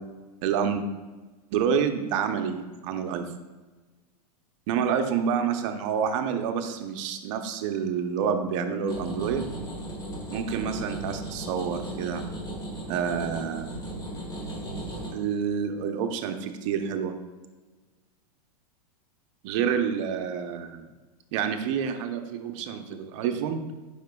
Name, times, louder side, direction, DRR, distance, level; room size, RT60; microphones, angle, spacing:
voice 1, 0.4-0.8 1.5-3.3 4.7-9.5 10.3-12.2 12.9-13.7 15.1-17.2 19.4-20.9 21.3-23.6, right 7 dB, 50° right, 6 dB, 0.7 m, -28 dB
sound 1, 8.9-15.1, right 1 dB, 20° left, 1.5 m, -36 dB
9.2 x 5.0 x 2.3 m, 1.3 s
hypercardioid pair, 130°, 20 cm